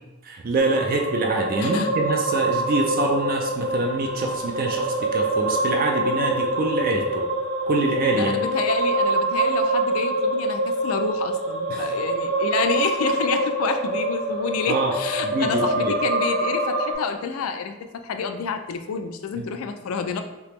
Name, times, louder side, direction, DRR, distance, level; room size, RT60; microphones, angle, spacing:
voice 1, 0.2-7.2 7.7-8.5 11.7-11.9 14.7-14.9 15.2-16.0 19.4-19.5, right 2 dB, 40° right, 2 dB, 0.3 m, -25 dB
sound 1, 0.6-16.9, right 2 dB, 75° right, 0.8 m, -25 dB
voice 2, 1.6-1.9 8.1-20.2, left 6 dB, 80° left, 7 dB, 0.4 m, -29 dB
3.4 x 2.8 x 3.0 m, 1.1 s
head